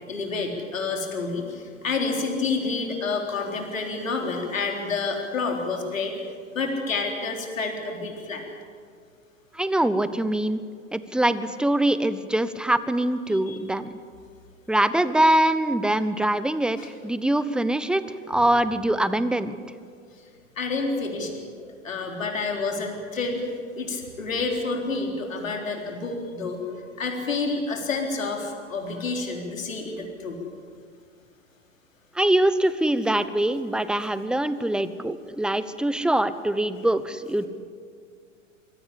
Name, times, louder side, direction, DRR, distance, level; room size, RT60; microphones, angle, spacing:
voice 1, 0.1-6.1 6.5-8.4 13.5-13.6 16.8-16.9 20.6-21.5 21.8-23.4 23.7-26.6 27.0-30.4, left 3 dB, 80° left, 2 dB, 3.9 m, -29 dB
voice 2, 9.5-10.6 10.9-13.9 14.7-19.6 32.1-37.5, right 1 dB, ahead, 14 dB, 0.9 m, -23 dB
24.0 x 17.5 x 8.4 m, 2.2 s
hypercardioid pair, 95°, 39 cm